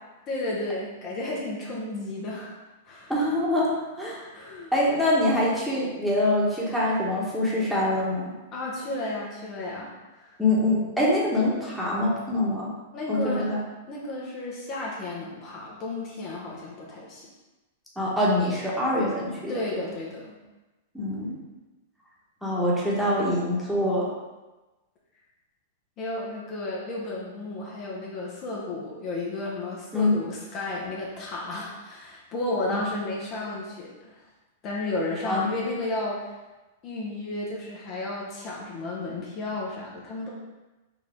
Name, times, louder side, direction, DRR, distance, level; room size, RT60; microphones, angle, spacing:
voice 1, 0.3-3.1 4.3-4.7 8.5-10.4 12.9-13.5 13.9-17.3 19.5-20.4 26.0-34.2 34.6-36.3 36.8-40.3, left 2 dB, 40° left, -4 dB, 0.9 m, -33 dB
voice 2, 3.1-4.3 4.7-8.3 10.4-12.7 13.1-13.6 18.0-19.5 20.9-21.3 22.4-24.1 29.9-30.2 32.7-32.8 35.3-35.5, left 1 dB, ahead, -7 dB, 1.3 m, -24 dB
4.7 x 2.7 x 3.6 m, 1.1 s
hypercardioid pair, 115°, 0 cm